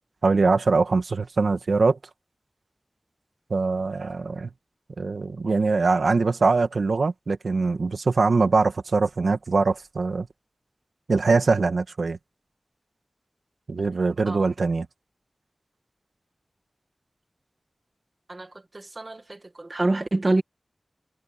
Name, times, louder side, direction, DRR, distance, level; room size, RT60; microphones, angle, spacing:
voice 1, 0.2-2.0 3.5-4.5 5.0-10.3 11.1-12.2 13.7-14.9, right 4 dB, 85° right, 2.0 m, -22 dB
voice 2, 18.7-20.4, right 2 dB, 45° right, 1.8 m, -26 dB
wide cardioid pair, 50°, 0 cm